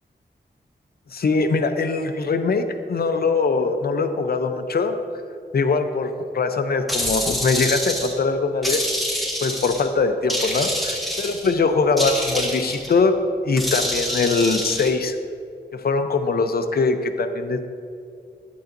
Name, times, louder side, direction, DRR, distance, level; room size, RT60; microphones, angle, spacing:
voice 1, 1.1-4.9 5.5-8.8 9.4-13.1 13.4-15.2 15.7-17.6, left 4 dB, 60° left, 6 dB, 0.6 m, -22 dB
sound 1, 6.9-8.2 8.6-9.9 10.3-11.5 12.0-12.9 13.6-14.9, equal, ahead, 1.5 m, -26 dB
11.5 x 9.2 x 2.6 m, 2.4 s
wide cardioid pair, 100°, 18 cm